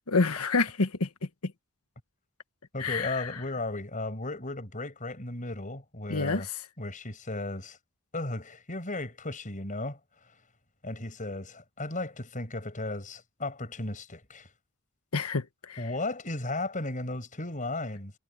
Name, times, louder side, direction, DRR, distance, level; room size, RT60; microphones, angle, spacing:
voice 1, 0.1-1.1 1.4-1.5 2.8-3.3 6.1-6.4 15.1-15.8, left 3 dB, 80° left, 1.4 m, -28 dB
voice 2, 2.7-6.5 6.8-7.8 8.1-10.0 10.8-14.5 15.8-18.1, left 2 dB, 35° left, 6.4 m, -35 dB
head